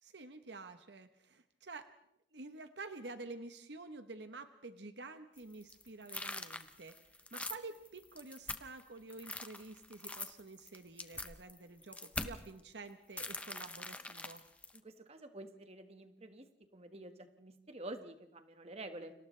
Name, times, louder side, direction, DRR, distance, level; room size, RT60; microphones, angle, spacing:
voice 1, 0.0-1.9 2.3-7.0 7.3-14.4, right 3 dB, 70° right, 9 dB, 1.1 m, -49 dB
sound 1, 5.4-8.8 9.1-12.5 13.2-14.8, left 2 dB, 10° left, 0.9 m, -43 dB
voice 2, 14.7-16.4 16.7-19.1, right 1 dB, 35° right, 7 dB, 1.6 m, -49 dB
29.5 x 26.5 x 3.3 m, 0.78 s
head